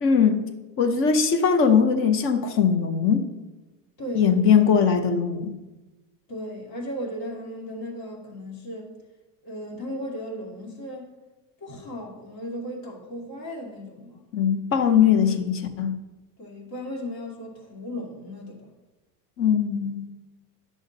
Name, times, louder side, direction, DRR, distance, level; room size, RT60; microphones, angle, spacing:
voice 1, 0.0-0.5 0.8-3.3 4.2-5.5 14.3-16.0 19.4-20.1, left 7 dB, 25° left, 9 dB, 0.6 m, -20 dB
voice 2, 4.0-4.3 6.3-8.9 9.4-11.1 11.6-14.2 16.4-18.7, equal, 45° left, 0 dB, 2.4 m, -36 dB
11.0 x 6.4 x 3.9 m, 1.1 s
cardioid pair, 160°, 49 cm